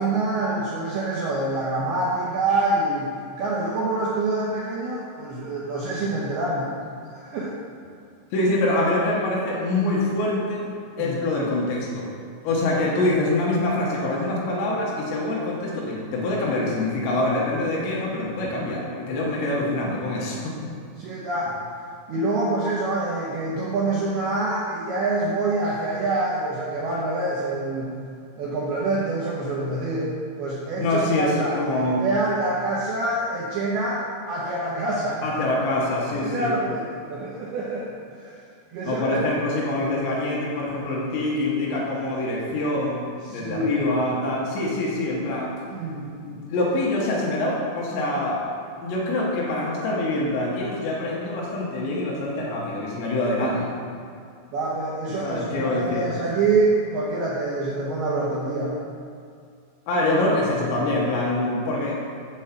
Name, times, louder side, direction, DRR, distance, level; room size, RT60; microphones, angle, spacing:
voice 1, 0.0-3.1 3.4-6.7 7.0-7.5 11.0-11.2 21.0-21.6 22.1-27.9 28.4-30.1 30.4-35.3 36.1-38.4 38.7-39.2 43.3-43.9 45.7-46.1 54.5-58.8, right 2 dB, 80° right, -5 dB, 2.3 m, -26 dB
voice 2, 8.3-10.7 11.0-12.1 12.4-20.6 30.8-32.0 35.2-36.5 38.8-45.5 46.2-48.4 48.8-53.8 55.2-56.1 59.9-62.3, left 2 dB, 75° left, -4 dB, 3.1 m, -25 dB
7.8 x 4.6 x 7.2 m, 2.3 s
omnidirectional pair, 5.7 m